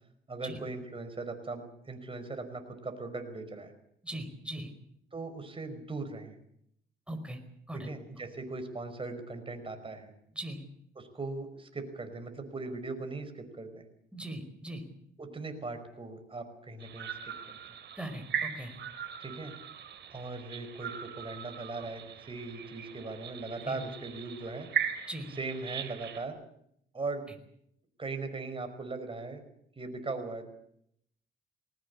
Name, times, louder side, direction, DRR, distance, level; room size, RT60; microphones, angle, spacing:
voice 1, 0.3-3.7 5.1-6.4 7.7-10.1 11.0-13.9 15.2-17.6 19.2-19.5 20.1-24.7 25.4-26.4 26.9-27.2 28.0-29.4 29.8-30.5, right 3 dB, 25° right, 6 dB, 5.3 m, -39 dB
voice 2, 4.0-4.7 7.1-7.4 7.7-7.9 10.3-10.6 14.1-14.8 18.0-18.7 23.7-23.8 25.1-25.3, right 1 dB, 5° right, 7 dB, 4.9 m, -39 dB
sound 1, 16.8-26.3, right 8 dB, 65° right, 3.3 m, -39 dB
20.5 x 19.0 x 8.5 m, 0.72 s
cardioid pair, 90°, 20 cm